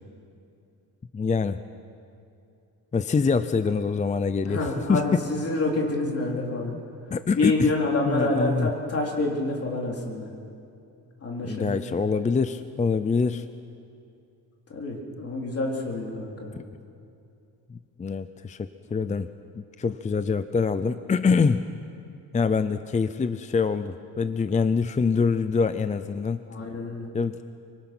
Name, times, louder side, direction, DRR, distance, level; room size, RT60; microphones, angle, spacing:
voice 1, 1.1-1.6 2.9-4.6 4.9-5.3 6.7-6.8 7.1-7.7 8.1-8.7 11.4-13.5 16.5-16.6 17.7-19.3 19.8-21.6 22.3-26.4 27.1-27.4, left 5 dB, 20° left, 11 dB, 0.5 m, -25 dB
voice 2, 4.5-6.7 7.3-10.3 11.2-11.8 14.7-16.6 26.5-27.1, left 2 dB, 40° left, -1 dB, 4.0 m, -27 dB
25.5 x 24.5 x 6.2 m, 2.6 s
cardioid pair, 145°, 38 cm